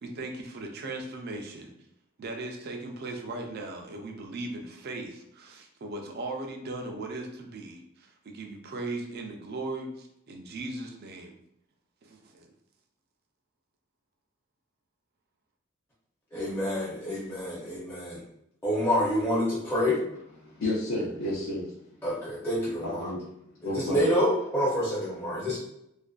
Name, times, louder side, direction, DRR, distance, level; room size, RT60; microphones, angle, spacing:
voice 1, 0.0-1.7 2.2-11.4 12.0-12.5, right 2 dB, 50° right, 2 dB, 0.4 m, -38 dB
voice 2, 16.3-18.2 18.6-20.0 22.0-23.1 23.6-25.6, equal, 10° left, -8 dB, 0.6 m, -27 dB
voice 3, 20.4-21.7 22.8-23.2 23.6-24.1, left 1 dB, 80° left, -6 dB, 0.6 m, -31 dB
2.5 x 2.1 x 2.3 m, 0.78 s
head